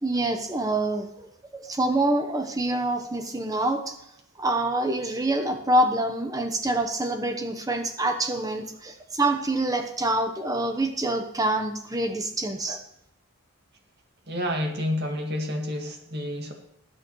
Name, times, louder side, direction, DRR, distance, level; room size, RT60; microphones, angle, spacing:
voice 1, 0.0-1.3 1.5-3.9 4.4-12.8, right 1 dB, 15° right, 6 dB, 1.1 m, -26 dB
voice 2, 14.3-16.5, left 1 dB, 50° right, 2 dB, 2.0 m, -29 dB
19.5 x 8.4 x 3.2 m, 0.79 s
head